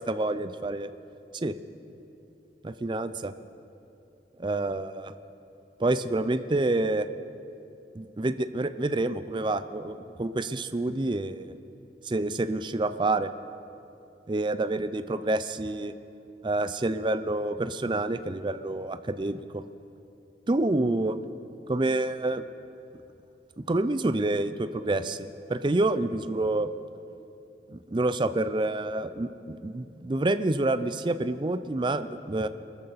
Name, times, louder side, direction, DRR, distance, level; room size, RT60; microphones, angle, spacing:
voice 1, 0.1-0.9 1.3-1.5 2.6-3.3 4.4-5.1 5.8-7.1 7.9-11.6 12.0-13.3 14.3-15.9 16.4-19.6 20.5-21.1 21.7-22.4 23.6-26.7 27.7-32.5, right 2 dB, 25° right, 11 dB, 0.5 m, -28 dB
23.5 x 13.5 x 4.1 m, 2.8 s
head